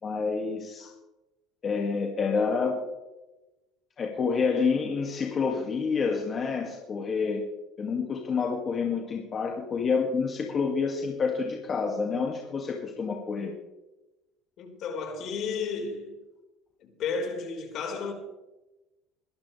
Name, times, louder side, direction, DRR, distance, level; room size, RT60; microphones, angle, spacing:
voice 1, 0.0-0.9 1.6-2.8 4.0-7.4 7.8-13.5, left 5 dB, 35° left, 2.2 m, -28 dB
voice 2, 14.6-16.1 16.8-18.1, left 5 dB, 55° left, 4.7 m, -33 dB
23.0 x 12.0 x 3.4 m
supercardioid pair, 100°, 0 cm